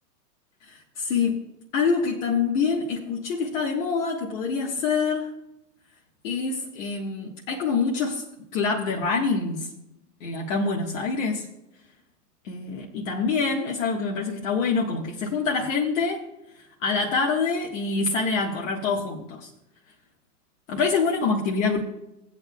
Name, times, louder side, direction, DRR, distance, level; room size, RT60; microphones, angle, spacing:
voice 1, 0.6-1.4 1.7-5.4 6.2-8.2 8.5-9.7 10.2-11.5 12.4-16.2 16.8-19.5 20.7-21.8, left 4 dB, 50° left, -2 dB, 1.7 m, -26 dB
18.0 x 8.5 x 2.3 m, 0.89 s
hypercardioid pair, 130°, 48 cm